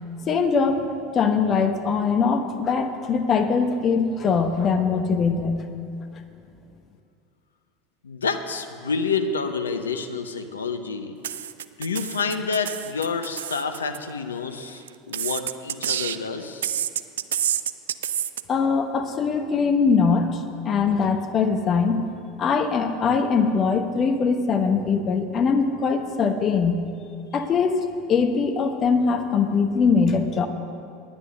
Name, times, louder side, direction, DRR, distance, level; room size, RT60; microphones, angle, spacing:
voice 1, 0.3-0.9 1.1-5.7 18.5-22.0 22.4-26.8 27.3-27.8 28.1-30.5, left 5 dB, 35° left, 6 dB, 1.1 m, -22 dB
voice 2, 8.0-11.2 11.8-16.7, left 5 dB, 80° left, 7 dB, 0.7 m, -28 dB
sound 1, 11.2-14.0 14.9-16.3 16.6-18.4, right 10 dB, 75° right, 0.3 m, -28 dB
9.9 x 9.9 x 6.5 m, 2.4 s
figure-of-eight pair, 75°, 0 cm